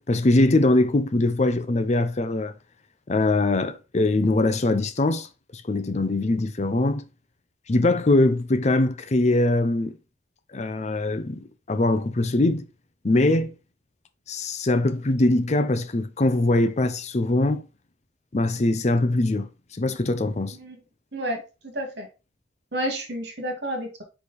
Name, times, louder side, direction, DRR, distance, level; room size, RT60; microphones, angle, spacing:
voice 1, 0.0-2.5 3.1-5.3 5.5-7.0 7.7-10.0 10.5-12.7 13.0-13.5 14.3-17.6 18.3-20.6, left 2 dB, 40° left, 0.6 m, -22 dB
voice 2, 21.1-22.1 22.7-24.0, equal, 65° right, 2.2 m, -31 dB
5.0 x 5.0 x 4.2 m
head